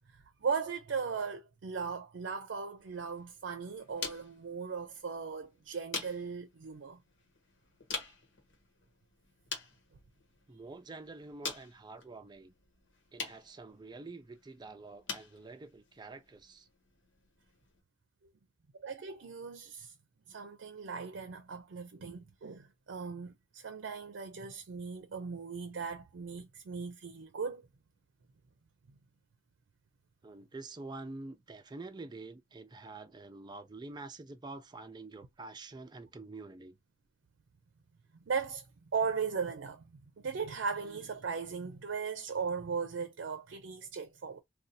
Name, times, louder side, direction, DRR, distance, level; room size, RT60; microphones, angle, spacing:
voice 1, 0.1-7.0 18.8-19.9 20.3-27.6 38.1-44.4, right 5 dB, 85° right, 0.5 m, -38 dB
sound 1, 2.8-17.8, left 4 dB, 80° left, 1.1 m, -47 dB
voice 2, 10.5-12.5 13.1-16.7 30.2-36.8, right 3 dB, 25° right, 0.4 m, -47 dB
2.7 x 2.3 x 3.9 m
head